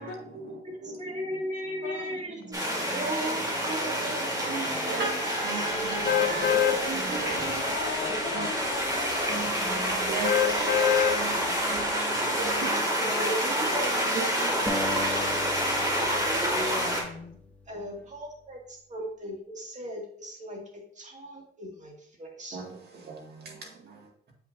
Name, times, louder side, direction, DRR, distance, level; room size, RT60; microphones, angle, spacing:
voice 1, 0.0-7.7 8.3-8.5 9.3-13.4 14.1-15.6 17.8-17.9 22.5-24.1, right 4 dB, 55° right, 1.9 m, -38 dB
voice 2, 0.6-2.4 2.9-5.1 5.6-7.0 8.0-8.1 9.4-9.5 9.8-10.1 10.5-10.7 11.4-12.4 13.0-13.9 16.1-16.8 17.7-22.6, right 1 dB, 35° right, 2.0 m, -37 dB
sound 1, 2.5-17.0, equal, 20° right, 2.1 m, -28 dB
sound 2, 6.1-6.8 7.3-7.4 10.2-11.2 11.7-11.8, left 9 dB, 50° left, 0.6 m, -23 dB
voice 3, 6.5-9.6 13.6-14.3 16.6-17.4, left 4 dB, 80° left, 1.1 m, -39 dB
sound 3, 14.7-17.9, left 2 dB, 5° left, 1.0 m, -37 dB
7.4 x 6.2 x 2.6 m
cardioid pair, 90°, 20 cm